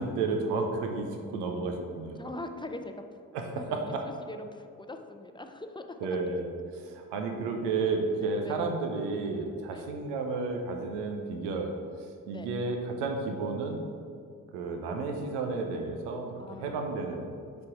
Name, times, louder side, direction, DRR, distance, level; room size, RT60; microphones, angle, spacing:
voice 1, 0.0-2.2 3.3-4.0 6.0-11.7 12.3-13.8 14.5-17.3, right 3 dB, 85° right, 3 dB, 0.7 m, -32 dB
voice 2, 2.2-3.2 3.6-6.2 8.4-8.6 9.7-10.0 12.3-12.5 16.4-16.9, left 2 dB, 10° left, 6 dB, 0.6 m, -42 dB
5.2 x 4.3 x 4.7 m, 2.3 s
hypercardioid pair, 40°, 40 cm